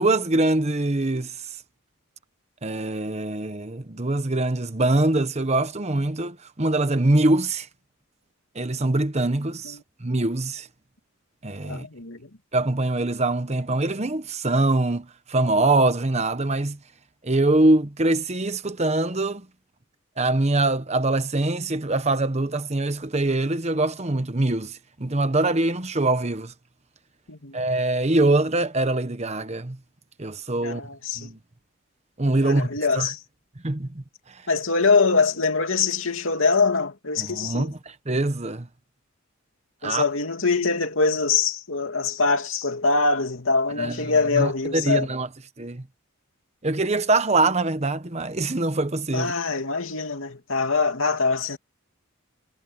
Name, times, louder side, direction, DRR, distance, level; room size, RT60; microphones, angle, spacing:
voice 1, 0.0-1.4 2.6-7.7 8.5-10.7 11.4-11.9 12.5-16.8 17.2-19.5 20.2-26.5 27.5-29.8 30.2-30.8 31.2-31.4 32.2-32.7 32.9-33.1 33.6-34.0 34.3-34.4 37.2-37.8 38.1-38.7 39.8-40.0 43.8-45.3 45.6-45.8 46.6-49.3, right 2 dB, 30° right, 1.1 m, -23 dB
voice 2, 11.6-12.3 27.3-27.6 30.6-31.3 32.3-33.2 34.5-37.7 39.8-45.1 49.1-51.6, left 4 dB, 70° left, 2.8 m, -23 dB
head